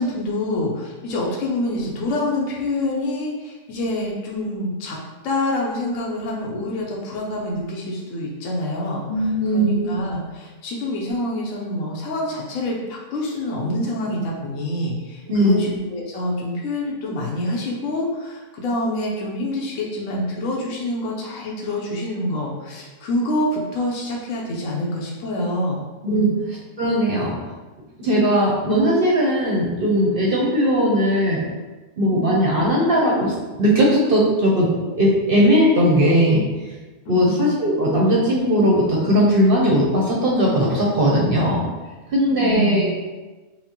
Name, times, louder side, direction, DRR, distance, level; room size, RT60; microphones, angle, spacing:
voice 1, 0.0-5.0 5.2-25.8 26.1-26.4 37.1-37.4 42.3-42.9, left 1 dB, 70° left, -3 dB, 1.0 m, -26 dB
voice 2, 9.1-9.9 15.3-15.6 26.0-26.3 26.8-27.3 28.0-31.4 32.0-36.4 37.1-41.6 42.1-42.9, equal, 55° right, -4 dB, 0.7 m, -18 dB
5.7 x 2.1 x 2.8 m, 1.2 s
omnidirectional pair, 1.5 m